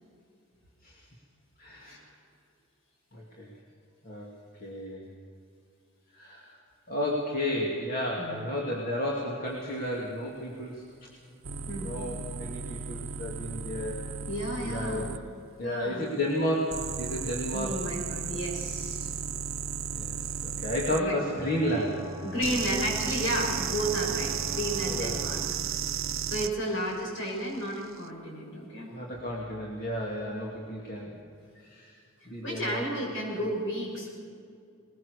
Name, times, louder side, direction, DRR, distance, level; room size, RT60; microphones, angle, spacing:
voice 1, 1.6-2.1 3.1-3.5 4.0-4.3 4.6-5.1 6.1-6.5 6.9-10.8 11.8-14.1 14.7-15.2 15.6-17.8 19.9-22.1 24.0-24.1 24.8-25.2 28.9-31.2 31.6-31.9 32.3-32.8 33.3-33.4, left 1 dB, 45° left, -3 dB, 2.7 m, -32 dB
sound 1, 11.4-15.2 16.7-21.0 22.4-26.5 27.7-28.0, right 7 dB, 85° right, 0.9 m, -34 dB
voice 2, 11.7-12.0 14.3-15.0 15.6-16.1 17.5-19.1 20.9-21.1 22.2-25.5 26.3-28.9 32.4-34.1, equal, 65° left, -1 dB, 6.4 m, -32 dB
sound 2, 21.4-25.4, left 1 dB, 20° right, 2.0 m, -42 dB
21.0 x 20.5 x 6.7 m, 2.4 s
head